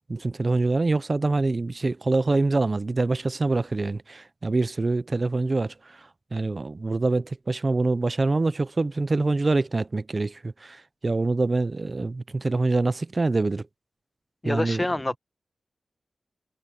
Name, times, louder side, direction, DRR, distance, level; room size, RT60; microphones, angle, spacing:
voice 1, 0.1-6.0 6.3-13.6 14.4-14.9, right 3 dB, 45° right, 0.6 m, -25 dB
voice 2, 14.4-15.2, left 2 dB, 25° left, 1.0 m, -26 dB
cardioid pair, 50°, 0 cm